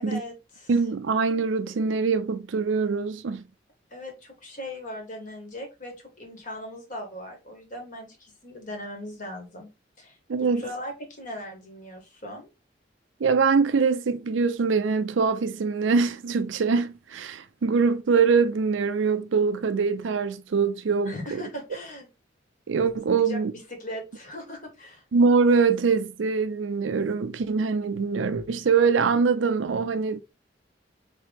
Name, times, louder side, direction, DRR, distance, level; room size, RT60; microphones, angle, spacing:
voice 1, 0.0-0.7 3.9-9.7 10.0-12.5 21.0-22.1 23.2-25.0, left 1 dB, 45° left, 1.5 m, -39 dB
voice 2, 0.7-3.4 10.3-10.6 13.2-21.4 22.7-23.5 25.1-30.2, right 5 dB, 85° right, 0.5 m, -23 dB
3.7 x 3.1 x 3.3 m
head